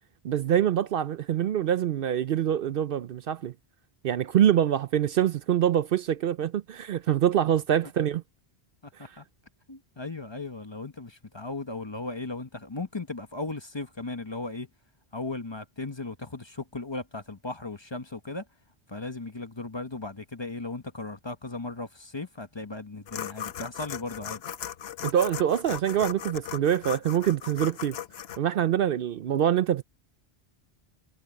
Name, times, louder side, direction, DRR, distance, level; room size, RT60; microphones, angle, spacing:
voice 1, 0.2-3.5 4.0-8.2 9.0-9.1 25.0-28.0 28.4-29.8, right 10 dB, 65° right, 0.7 m, -25 dB
voice 2, 8.8-9.2 9.7-14.7 15.1-18.4 18.9-24.4, left 3 dB, 25° left, 1.1 m, -36 dB
sound 1, 23.1-28.4, left 10 dB, 75° left, 1.0 m, -37 dB
omnidirectional pair, 1.1 m